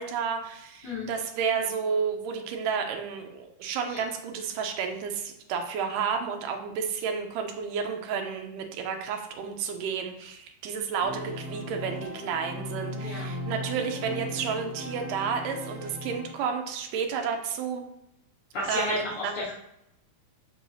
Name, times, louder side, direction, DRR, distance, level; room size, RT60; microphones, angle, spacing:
voice 1, 0.0-17.8 18.6-19.4, right 6 dB, 80° right, 4 dB, 2.0 m, -31 dB
Organ, 11.0-16.7, left 1 dB, 55° right, 1.3 m, -37 dB
voice 2, 18.5-19.5, left 2 dB, 85° left, -6 dB, 1.2 m, -32 dB
6.6 x 5.3 x 2.7 m, 0.83 s
omnidirectional pair, 4.3 m